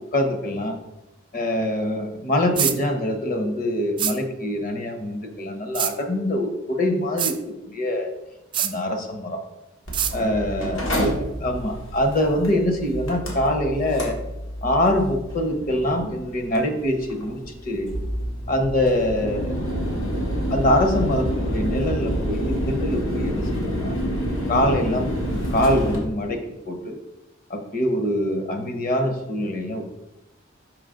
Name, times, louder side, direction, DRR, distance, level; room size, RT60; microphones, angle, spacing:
voice 1, 0.1-0.7 1.3-8.1 8.6-9.4 10.1-14.2 14.6-17.9 18.5-19.5 20.5-24.0 24.5-26.4 26.7-27.0 27.5-29.9, left 1 dB, 45° left, 5 dB, 0.9 m, -24 dB
sound 1, 2.6-2.8 4.0-4.2 5.7-5.9 7.2-7.4 8.5-8.7 9.9-10.1, right 9 dB, 25° right, 0.3 m, -23 dB
Mechanical fan, 9.9-26.0, equal, 85° left, 1.6 m, -28 dB
5.5 x 4.9 x 3.7 m, 0.93 s
head